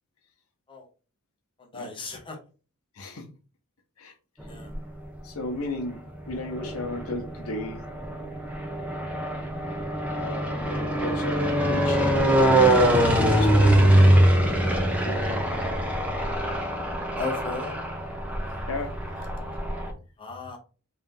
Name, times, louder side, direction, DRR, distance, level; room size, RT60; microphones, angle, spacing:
voice 1, 1.6-2.4 4.5-4.7 17.2-17.8 20.2-20.6, left 4 dB, 25° left, 1 dB, 0.9 m, -35 dB
voice 2, 3.0-3.3 4.0-4.1 5.2-7.8 10.1-12.2 13.3-14.7 15.0-15.4 18.7-19.0, left 2 dB, 70° left, 6 dB, 0.9 m, -35 dB
sound 1, 4.4-5.2 5.9-19.9, right 1 dB, 5° right, 0.7 m, -23 dB
3.3 x 2.7 x 3.7 m, 0.35 s
head